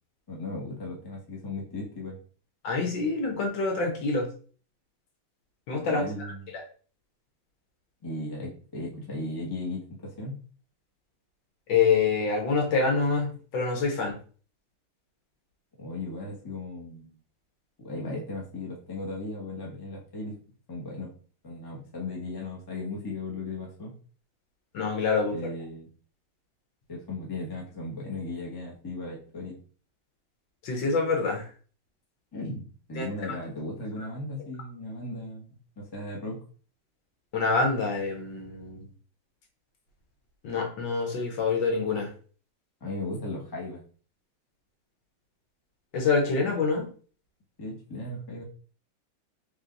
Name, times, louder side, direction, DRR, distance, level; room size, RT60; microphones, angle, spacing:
voice 1, 0.3-2.2 5.8-6.5 8.0-10.4 15.8-17.1 17.8-20.3 20.7-21.1 21.4-24.0 25.3-25.9 26.9-29.6 32.3-36.4 42.8-43.8 47.6-48.4, left 2 dB, 20° left, -2 dB, 0.6 m, -36 dB
voice 2, 2.6-4.3 5.7-6.0 11.7-14.2 24.7-25.4 30.6-31.5 33.0-33.1 37.3-38.8 40.4-42.1 45.9-46.9, left 4 dB, 65° left, 1 dB, 1.6 m, -26 dB
3.5 x 3.3 x 3.8 m, 0.41 s
omnidirectional pair, 2.3 m